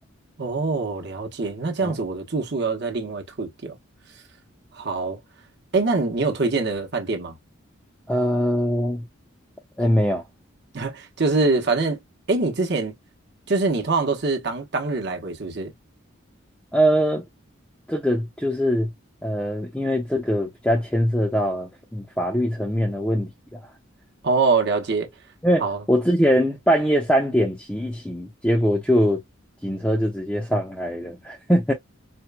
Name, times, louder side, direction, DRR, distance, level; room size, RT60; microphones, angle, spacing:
voice 1, 0.4-3.8 4.7-5.2 5.7-7.3 10.7-12.0 12.3-12.9 13.5-15.7 24.2-25.1 25.6-25.8, right 3 dB, 55° right, 1.0 m, -24 dB
voice 2, 8.1-9.0 9.8-10.2 16.7-17.2 17.9-18.9 19.2-23.6 25.4-29.2 29.6-31.7, equal, 5° left, 0.6 m, -22 dB
4.4 x 2.2 x 2.2 m
head